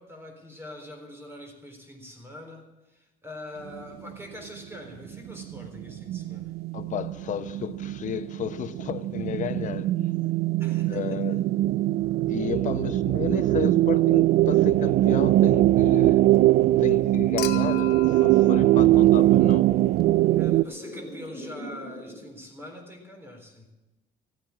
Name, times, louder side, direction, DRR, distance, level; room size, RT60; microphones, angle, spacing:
voice 1, 0.0-6.5 10.6-11.2 20.4-23.7, left 1 dB, 15° right, 4.0 m, -43 dB
sound 1, 4.1-4.2 5.0-20.6, right 16 dB, 70° right, 0.4 m, -22 dB
voice 2, 6.7-10.1 10.9-11.4 12.3-16.3 16.8-19.7, left 9 dB, 45° left, 0.8 m, -33 dB
sound 2, 12.2-22.2, equal, 20° left, 4.7 m, -42 dB
Human group actions / Chink clink / Liquid, 17.4-19.8 21.3-21.4, left 11 dB, 70° left, 1.1 m, -37 dB
15.0 x 9.0 x 8.5 m
cardioid pair, 110°, 17 cm